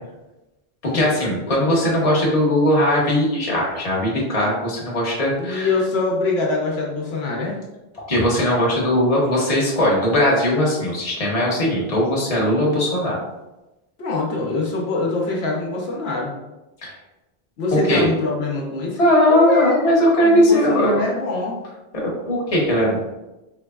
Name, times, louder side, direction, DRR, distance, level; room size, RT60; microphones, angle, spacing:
voice 1, 0.8-5.7 8.1-13.2 16.8-16.9 17.7-18.1 19.0-21.1 21.9-23.0, left 1 dB, 35° left, -4 dB, 1.0 m, -19 dB
voice 2, 5.4-7.6 14.0-16.3 17.6-21.6, left 3 dB, 80° left, -2 dB, 1.0 m, -24 dB
3.9 x 3.3 x 2.3 m, 1.0 s
omnidirectional pair, 1.1 m